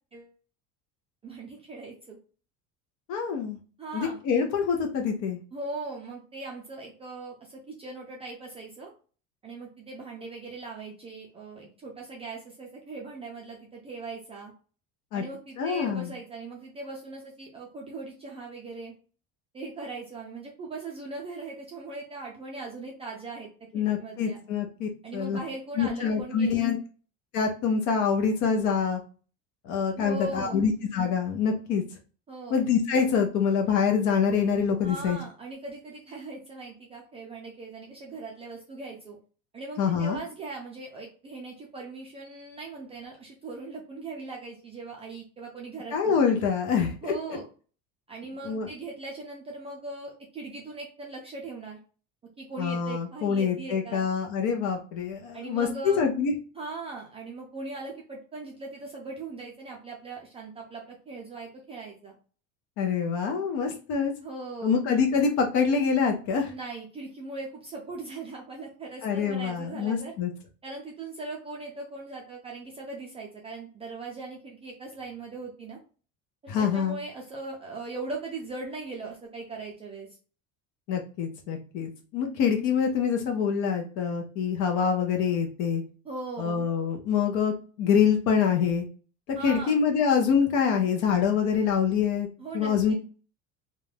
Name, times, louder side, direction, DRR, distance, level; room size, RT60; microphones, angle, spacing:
voice 1, 1.2-2.2 3.8-4.2 5.5-8.9 9.4-14.5 15.1-18.9 19.5-23.5 23.7-24.4 25.0-26.7 30.0-30.6 32.3-32.5 34.8-39.2 39.5-46.4 47.0-47.5 48.1-51.8 52.4-54.1 55.3-56.1 56.5-62.1 64.2-64.8 66.5-70.1 70.6-75.8 76.4-80.1 86.0-86.7 89.4-89.8 92.4-92.9, right 3 dB, 20° right, -2 dB, 0.3 m, -39 dB
voice 2, 3.1-3.6 3.9-5.4 15.1-15.2 15.6-16.1 23.7-25.4 25.8-26.8 27.3-29.0 29.6-31.8 32.5-35.2 39.8-40.2 45.9-47.1 48.4-48.7 52.6-56.3 62.8-64.1 64.6-66.5 69.0-70.3 76.5-77.0 80.9-85.8 86.4-88.8 89.3-92.3 92.5-92.9, left 6 dB, 60° left, 3 dB, 0.6 m, -25 dB
2.4 x 2.2 x 3.2 m, 0.38 s
cardioid pair, 160°, 33 cm